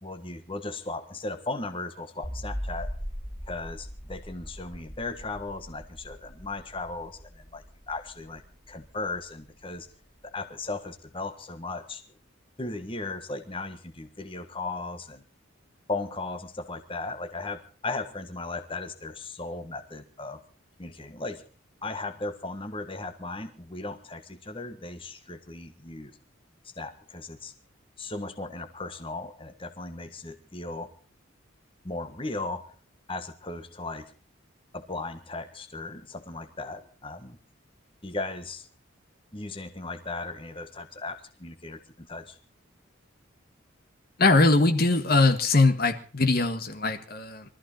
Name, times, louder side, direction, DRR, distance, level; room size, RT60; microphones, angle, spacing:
voice 1, 0.0-2.9 3.5-9.9 10.2-12.0 12.6-15.2 15.9-20.4 20.8-21.4 21.8-26.1 26.6-27.5 28.0-30.9 31.8-32.7 33.1-34.0 34.7-37.4 38.0-38.7 39.3-42.4, left 3 dB, 25° left, 7 dB, 1.5 m, -36 dB
sound 1, 2.2-9.4, equal, 10° left, 3.0 m, -40 dB
voice 2, 44.2-47.4, left 3 dB, 45° left, 8 dB, 1.6 m, -21 dB
23.0 x 14.0 x 4.2 m, 0.39 s
head